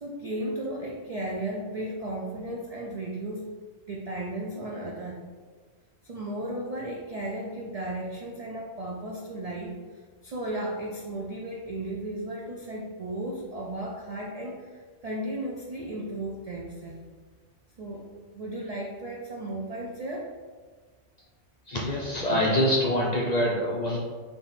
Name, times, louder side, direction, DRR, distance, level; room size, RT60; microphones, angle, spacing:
voice 1, 0.0-3.4 3.9-5.2 6.0-17.0 17.8-18.1 18.3-20.3, right 1 dB, 60° right, -2 dB, 0.4 m, -35 dB
voice 2, 21.7-24.0, equal, 50° left, -3 dB, 0.5 m, -25 dB
3.5 x 2.9 x 4.1 m, 1.5 s
omnidirectional pair, 1.3 m